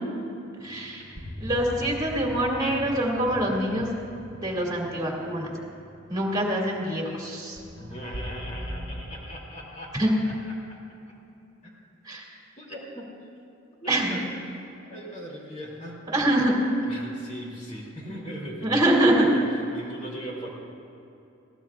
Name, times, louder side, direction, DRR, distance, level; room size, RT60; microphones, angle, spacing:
sound 1, 0.6-9.0, equal, 15° left, 2.7 m, -41 dB
voice 1, 0.6-1.0 1.4-4.0 4.4-5.5 6.1-7.6 9.9-10.1 12.0-12.3 13.9-14.2 16.1-16.5 18.6-19.3, right 1 dB, 20° right, -2 dB, 2.5 m, -25 dB
voice 2, 7.7-10.4 10.7-10.8 11.6-11.7 12.6-13.1 13.8-14.3 14.8-16.0 16.8-19.4 19.7-20.5, equal, 35° left, -3 dB, 2.8 m, -39 dB
21.5 x 16.5 x 2.5 m, 2.7 s
head